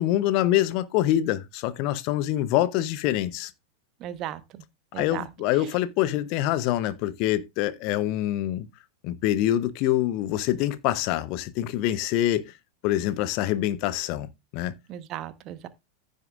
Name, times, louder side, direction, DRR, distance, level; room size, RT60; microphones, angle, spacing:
voice 1, 0.0-3.5 5.0-8.7 9.0-12.5 12.8-14.3 14.5-14.7, left 13 dB, 45° left, 0.7 m, -25 dB
voice 2, 4.0-4.4 4.9-5.2 14.9-15.7, right 12 dB, 35° right, 1.1 m, -35 dB
15.0 x 6.6 x 2.4 m
figure-of-eight pair, 90°, 0 cm